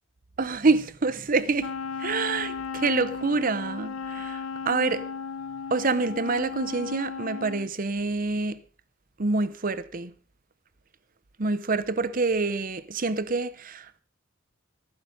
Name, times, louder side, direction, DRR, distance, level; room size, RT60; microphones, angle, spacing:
voice 1, 0.4-5.1 5.7-8.6 9.2-10.1 11.4-14.0, right 3 dB, 40° right, 0.7 m, -27 dB
Wind instrument woodwind instrument, 1.6-7.7, left 5 dB, 85° left, 0.8 m, -35 dB
15.0 x 9.8 x 5.4 m
head